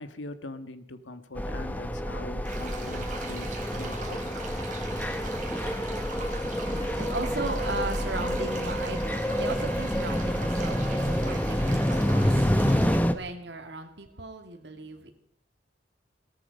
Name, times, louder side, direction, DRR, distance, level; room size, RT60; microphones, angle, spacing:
voice 1, 0.0-4.4, left 2 dB, 85° left, 11 dB, 1.5 m, -43 dB
sound 1, 1.4-13.1, equal, 10° left, 0.9 m, -28 dB
sound 2, 2.4-13.0, right 4 dB, 45° right, 4.1 m, -42 dB
voice 2, 6.4-15.1, right 3 dB, 65° right, 5 dB, 2.4 m, -37 dB
17.5 x 13.5 x 5.3 m, 0.62 s
head